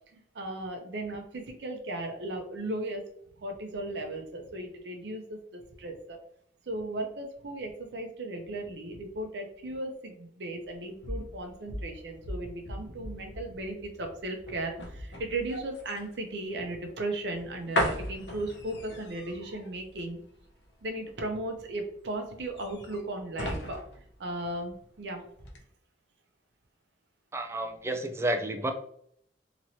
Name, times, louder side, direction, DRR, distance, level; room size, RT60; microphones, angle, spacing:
voice 1, 0.1-3.0 3.4-6.2 6.7-20.2 20.8-25.3, right 1 dB, 75° right, 3 dB, 0.6 m, -36 dB
sound 1, 10.6-25.0 25.4-25.6, equal, 80° left, 0.7 m, -38 dB
voice 2, 27.3-28.7, right 1 dB, 15° right, 5 dB, 0.3 m, -30 dB
3.0 x 2.9 x 2.7 m, 0.67 s
head